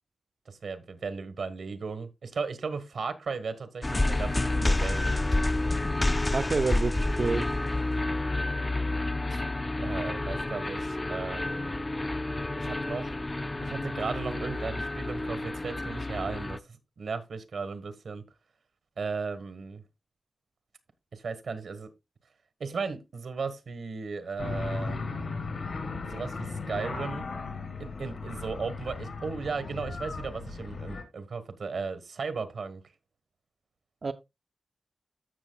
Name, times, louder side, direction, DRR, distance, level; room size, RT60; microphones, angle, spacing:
voice 1, 0.5-5.2 9.3-9.4 9.8-11.8 12.6-13.1 13.6-18.2 19.0-19.8 21.1-21.9 22.6-25.0 26.0-27.3 27.8-32.8, right 4 dB, 80° right, 1.3 m, -36 dB
sound 1, 3.8-16.6, left 2 dB, 20° left, 0.4 m, -29 dB
voice 2, 6.3-7.5 34.0-34.1, right 4 dB, 45° right, 0.5 m, -28 dB
sound 2, 24.4-31.0, left 4 dB, 75° left, 2.5 m, -36 dB
14.5 x 6.3 x 2.3 m
wide cardioid pair, 130°, 0 cm